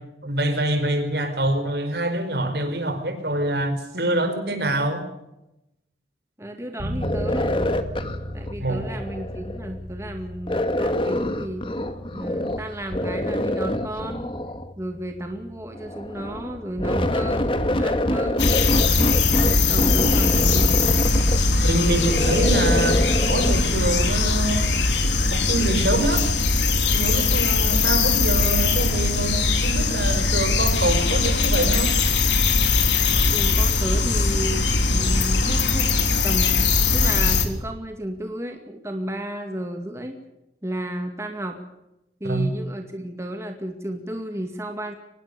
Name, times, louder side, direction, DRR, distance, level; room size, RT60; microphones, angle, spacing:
voice 1, 0.2-5.0 8.6-8.8 21.6-24.8 25.3-26.2 26.9-31.9 42.2-42.5, right 1 dB, 65° right, 8 dB, 4.9 m, -25 dB
voice 2, 6.4-7.7 8.3-11.7 12.1-14.3 14.8-18.5 19.7-21.1 33.3-40.2 40.6-41.6 42.2-44.9, right 1 dB, 15° right, 4 dB, 2.2 m, -33 dB
sound 1, 6.8-23.5, equal, 80° right, 5.7 m, -38 dB
sound 2, 7.0-9.8 10.5-12.6 12.9-14.7 15.8-23.5, left 1 dB, 30° left, 1.9 m, -26 dB
sound 3, 18.4-37.4, left 3 dB, 90° left, 3.5 m, -20 dB
24.5 x 20.0 x 6.9 m, 0.89 s
head